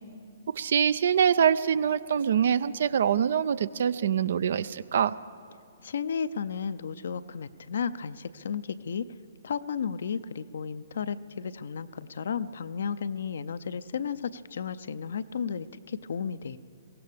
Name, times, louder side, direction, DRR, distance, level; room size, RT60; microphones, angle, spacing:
voice 1, 0.6-5.2, right 8 dB, 60° right, 17 dB, 0.4 m, -24 dB
voice 2, 5.8-9.1 9.4-16.6, left 6 dB, 60° left, 14 dB, 0.5 m, -33 dB
23.0 x 17.5 x 3.5 m, 2.5 s
figure-of-eight pair, 120°, 0 cm